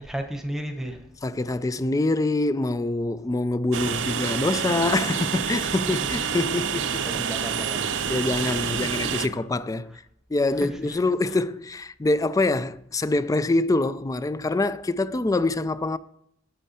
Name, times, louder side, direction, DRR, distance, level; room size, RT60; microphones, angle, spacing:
voice 1, 0.0-1.0 5.8-6.3 7.1-8.1 8.4-8.9 9.2-9.4 9.9-10.0 10.5-11.0 11.3-11.4, right 1 dB, ahead, 1.1 m, -35 dB
voice 2, 1.2-7.0 8.1-9.9 10.3-16.0, left 2 dB, 20° left, 0.3 m, -25 dB
Train, 3.7-9.3, right 7 dB, 70° right, 0.6 m, -28 dB
8.7 x 8.5 x 4.2 m
head